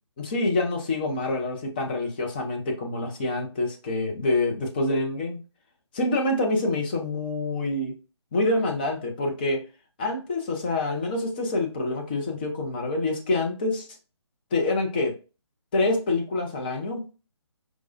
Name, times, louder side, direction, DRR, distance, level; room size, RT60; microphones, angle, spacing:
voice 1, 0.2-5.4 5.9-7.9 8.3-9.6 10.0-13.9 14.5-15.1 15.7-17.1, left 2 dB, 20° left, 2 dB, 0.5 m, -26 dB
4.6 x 2.2 x 2.6 m, 0.32 s
figure-of-eight pair, 145°, 15 cm